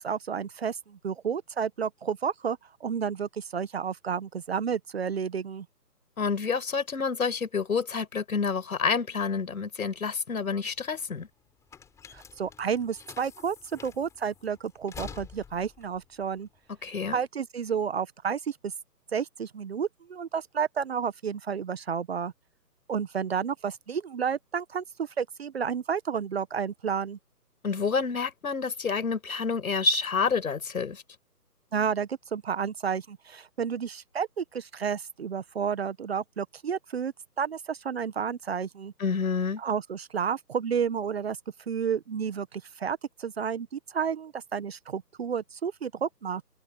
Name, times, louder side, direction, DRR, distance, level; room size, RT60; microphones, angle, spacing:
voice 1, 0.0-5.6 12.1-16.5 17.1-18.7 19.1-22.3 22.9-27.2 31.7-38.9 39.6-41.4 41.7-46.4, right 7 dB, 40° right, 1.4 m, -31 dB
voice 2, 6.2-11.3 16.8-17.2 27.6-31.0 39.0-39.6, left 5 dB, 60° left, 6.6 m, -28 dB
sound 1, 10.4-17.2, left 6 dB, 5° left, 4.2 m, -48 dB
figure-of-eight pair, 155°, 49 cm